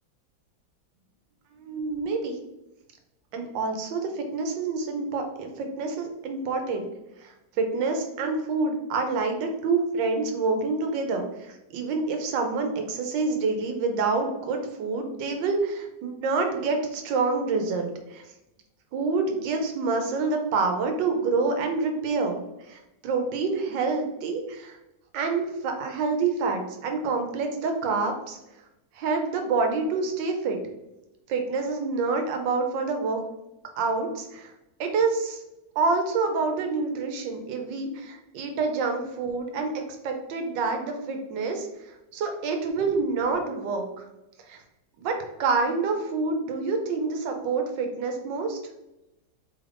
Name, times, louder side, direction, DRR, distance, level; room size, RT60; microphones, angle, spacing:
voice 1, 1.6-2.4 3.3-6.9 7.2-18.2 18.9-24.8 25.1-28.4 28.9-30.6 31.3-33.2 33.8-34.5 34.8-35.4 35.8-43.8 44.5-44.6 45.0-45.1 45.4-48.6, right 4 dB, 85° right, 4 dB, 1.3 m, -27 dB
3.5 x 3.3 x 2.5 m, 0.93 s
omnidirectional pair, 1.9 m